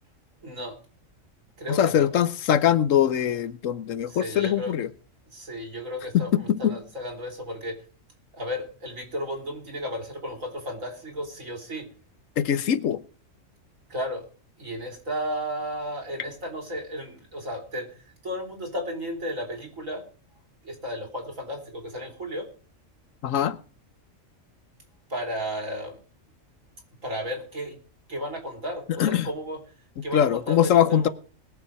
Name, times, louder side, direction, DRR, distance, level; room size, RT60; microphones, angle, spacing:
voice 1, 0.4-0.8 1.6-2.1 4.1-4.8 5.3-7.8 8.3-11.9 13.9-14.3 14.6-17.9 18.2-20.0 20.6-22.5 25.1-26.0 27.0-27.8 28.1-29.6 30.0-31.1, equal, 80° right, 3.7 m, -33 dB
voice 2, 1.7-4.9 6.1-6.8 12.4-13.0 23.2-23.6 29.0-29.3 30.1-31.1, left 10 dB, 80° left, 1.2 m, -22 dB
21.0 x 7.1 x 4.8 m
omnidirectional pair, 1.4 m